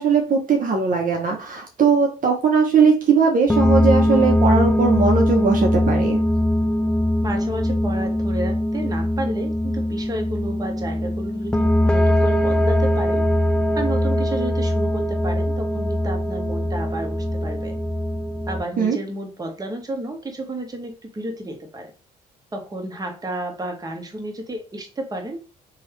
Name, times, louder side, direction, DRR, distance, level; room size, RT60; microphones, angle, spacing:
voice 1, 0.0-6.2 18.8-19.0, right 5 dB, 45° right, 2 dB, 0.8 m, -19 dB
sound 1, 3.5-18.6, left 1 dB, 5° left, 0.4 m, -21 dB
voice 2, 7.2-13.3 13.7-17.8 18.5-21.9 22.5-25.4, right 1 dB, 20° right, 3 dB, 1.0 m, -31 dB
3.0 x 2.4 x 3.0 m, 0.33 s
hypercardioid pair, 50°, 20 cm